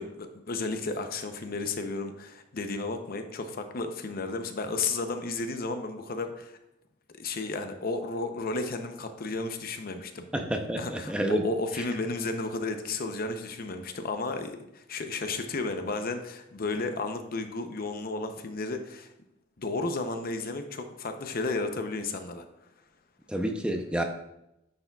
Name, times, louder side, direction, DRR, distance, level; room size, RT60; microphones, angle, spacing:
voice 1, 0.0-6.6 7.1-10.3 10.8-19.1 19.6-22.5, left 3 dB, 50° left, 7 dB, 0.6 m, -33 dB
voice 2, 10.3-11.4 23.3-24.0, right 1 dB, 5° right, 4 dB, 0.6 m, -29 dB
9.7 x 6.7 x 2.3 m, 0.85 s
head